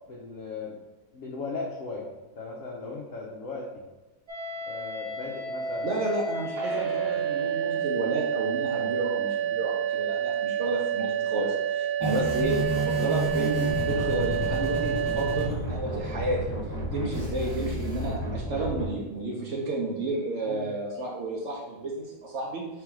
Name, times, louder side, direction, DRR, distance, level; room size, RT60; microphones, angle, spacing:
voice 1, 0.1-0.8 1.1-2.1 2.4-3.9 4.7-5.9 11.3-11.5 12.4-12.5 16.9-17.1 20.5-20.7, left 4 dB, 70° left, -2 dB, 0.8 m, -37 dB
sound 1, 4.3-15.5, right 8 dB, 35° right, 1.1 m, -29 dB
voice 2, 5.8-11.5 12.0-16.4 16.9-22.8, right 2 dB, 80° right, -2 dB, 0.6 m, -31 dB
sound 2, 12.0-18.8, equal, 15° left, 0.8 m, -31 dB
3.4 x 3.3 x 4.6 m, 1.1 s
omnidirectional pair, 2.0 m